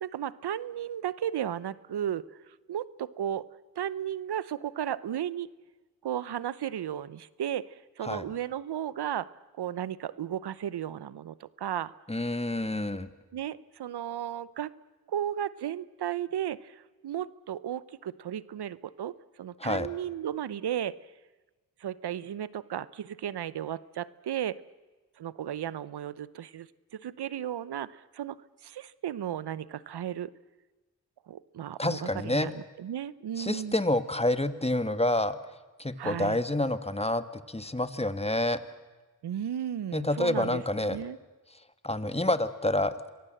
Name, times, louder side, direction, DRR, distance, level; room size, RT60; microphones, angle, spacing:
voice 1, 0.0-3.5 3.8-5.5 6.0-9.3 9.6-11.9 13.3-14.7 15.1-21.0 21.8-24.6 25.2-28.4 28.6-30.3 31.3-33.8 36.0-36.4 39.2-40.6 40.9-41.2, right 10 dB, 90° right, 19 dB, 0.7 m, -34 dB
voice 2, 12.1-13.1 19.6-19.9 31.8-32.5 33.4-35.4 35.8-38.6 39.9-41.0 41.8-43.1, left 1 dB, 15° left, 11 dB, 1.7 m, -28 dB
27.0 x 22.0 x 7.7 m, 1.2 s
cardioid pair, 40°, 38 cm